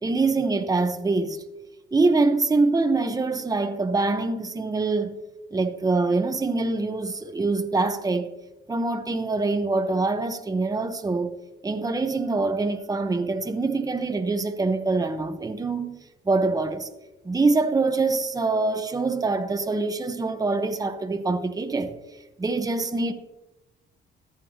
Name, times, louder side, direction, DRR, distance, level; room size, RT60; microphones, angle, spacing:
voice 1, 0.0-1.4 1.9-5.2 5.5-8.3 8.7-11.4 11.6-15.9 16.3-16.9 17.2-22.0 22.4-23.1, right 3 dB, 20° right, 0.9 m, -24 dB
14.5 x 10.5 x 2.9 m
cardioid pair, 90°, 20 cm